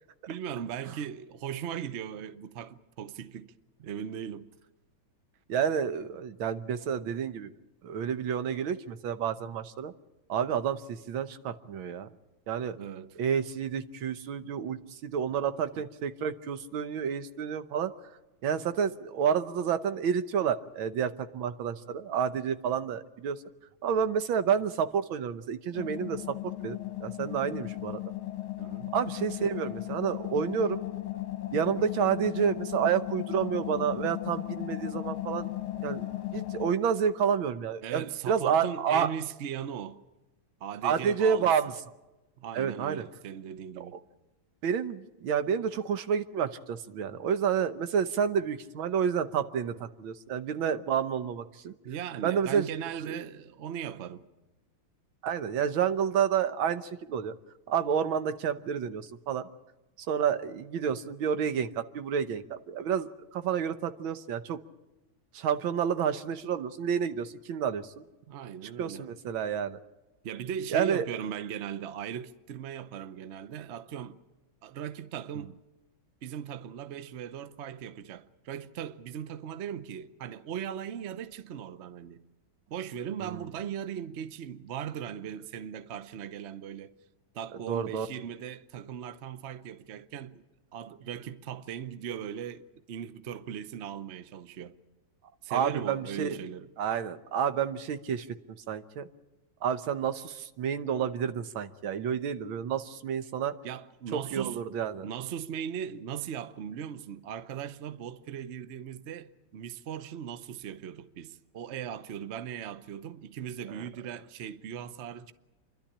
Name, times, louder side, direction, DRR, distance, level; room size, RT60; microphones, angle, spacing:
voice 1, 0.0-3.5 3.8-4.5 12.7-13.2 28.6-28.9 37.8-40.0 40.6-41.5 42.4-44.0 51.8-54.3 68.3-69.1 70.2-74.2 74.6-75.5 76.2-82.2 82.7-86.9 87.3-90.4 90.7-94.8 95.4-96.7 103.6-104.6 105.0-115.3, right 9 dB, 55° right, 0.8 m, -38 dB
voice 2, 5.5-7.5 7.8-9.9 10.3-12.1 12.5-12.8 13.2-17.9 18.4-23.4 23.8-28.0 28.9-30.8 31.5-35.5 35.8-36.1 36.3-39.1 40.8-41.7 42.5-43.0 43.8-43.9 44.6-51.7 52.2-52.7 53.0-53.2 55.2-57.4 57.7-59.5 60.1-64.6 65.3-68.0 68.6-69.8 70.7-71.1 83.2-83.4 87.7-88.1 95.5-96.4 96.8-98.3 98.7-99.1 99.6-103.5 104.1-105.1 113.8-113.9, right 7 dB, 85° right, 1.7 m, -29 dB
sound 1, 25.7-36.7, left 15 dB, 60° left, 1.3 m, -36 dB
28.5 x 12.0 x 10.0 m
omnidirectional pair, 2.2 m